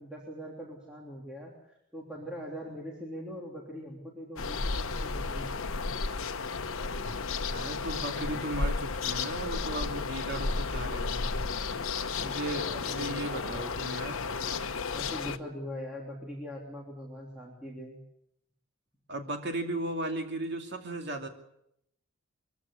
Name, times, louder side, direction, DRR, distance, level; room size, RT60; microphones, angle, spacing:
voice 1, 0.0-5.5 12.7-13.7 14.9-18.0, equal, 5° right, -3 dB, 3.3 m, -42 dB
sound 1, 4.4-15.4, left 4 dB, 75° left, 1.1 m, -33 dB
voice 2, 7.5-11.3 12.2-14.2 19.1-21.3, right 1 dB, 50° right, 4 dB, 2.7 m, -36 dB
23.0 x 15.0 x 8.5 m, 0.78 s
head